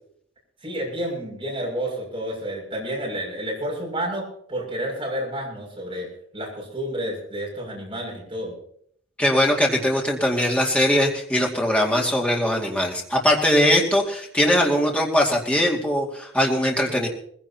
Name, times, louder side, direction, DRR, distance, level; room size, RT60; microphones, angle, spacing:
voice 1, 0.6-6.1 6.3-8.6, right 1 dB, 25° right, -2 dB, 6.8 m, -30 dB
voice 2, 9.2-17.1, left 1 dB, 5° left, -1 dB, 2.3 m, -21 dB
21.0 x 16.5 x 2.9 m, 0.65 s
head